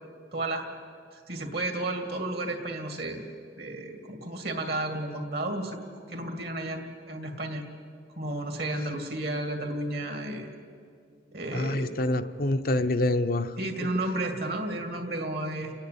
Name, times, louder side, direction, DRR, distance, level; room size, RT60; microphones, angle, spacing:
voice 1, 0.3-0.7 1.1-3.2 3.6-5.8 6.1-7.6 8.2-10.5 11.3-12.0 13.6-15.7, right 1 dB, 60° right, 5 dB, 2.3 m, -32 dB
voice 2, 11.5-13.6, left 2 dB, 50° left, 9 dB, 0.7 m, -26 dB
30.0 x 10.5 x 8.7 m, 2.3 s
head